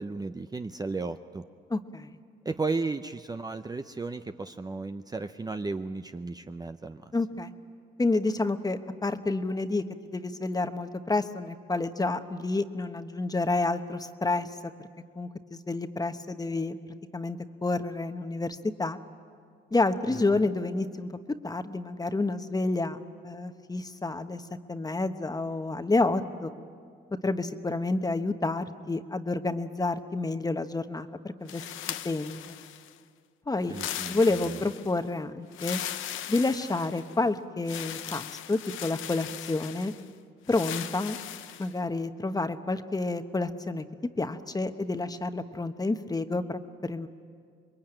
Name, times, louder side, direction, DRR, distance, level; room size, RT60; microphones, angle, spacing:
voice 1, 0.0-1.4 2.4-7.0 20.1-20.5 33.7-34.6, right 3 dB, 20° right, 8 dB, 0.7 m, -34 dB
voice 2, 1.7-2.2 7.1-7.5 8.0-14.7 15.2-16.8 17.1-19.0 19.7-24.4 24.7-26.5 27.2-31.6 32.0-32.6 33.5-33.7 34.1-35.8 36.3-39.9 40.5-41.2 41.6-43.8 44.2-47.1, left 2 dB, 20° left, 8 dB, 1.2 m, -29 dB
sound 1, 31.5-33.0 33.6-35.0 35.5-37.2 37.7-40.0 40.5-41.7, left 11 dB, 80° left, 0.9 m, -38 dB
27.0 x 22.0 x 9.0 m, 2.2 s
cardioid pair, 90°, 20 cm